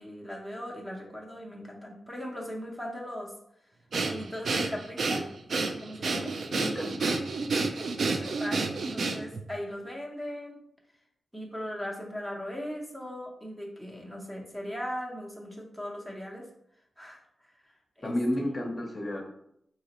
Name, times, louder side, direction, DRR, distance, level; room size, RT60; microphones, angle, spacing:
voice 1, 0.0-3.3 4.0-5.2 5.7-6.3 8.1-10.6 11.3-16.5 17.0-17.2 18.0-18.1, equal, 10° right, -2 dB, 0.8 m, -38 dB
Breathing, 3.9-9.4, right 3 dB, 70° right, 0.4 m, -29 dB
voice 2, 6.5-7.3 18.0-19.2, left 1 dB, 30° left, 0 dB, 0.7 m, -32 dB
4.0 x 2.9 x 2.9 m, 0.74 s
wide cardioid pair, 105°, 0 cm